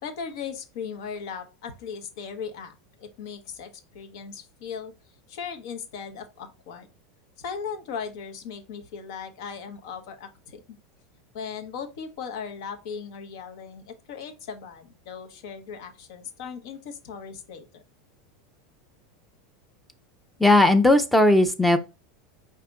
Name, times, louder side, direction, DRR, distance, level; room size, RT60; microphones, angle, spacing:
voice 1, 0.0-4.9 5.3-6.9 7.4-10.8 11.3-17.8, left 6 dB, 70° left, 7 dB, 1.0 m, -38 dB
voice 2, 20.4-21.8, left 1 dB, ahead, 8 dB, 0.5 m, -17 dB
4.9 x 2.8 x 3.5 m, 0.30 s
supercardioid pair, 145°, 3 cm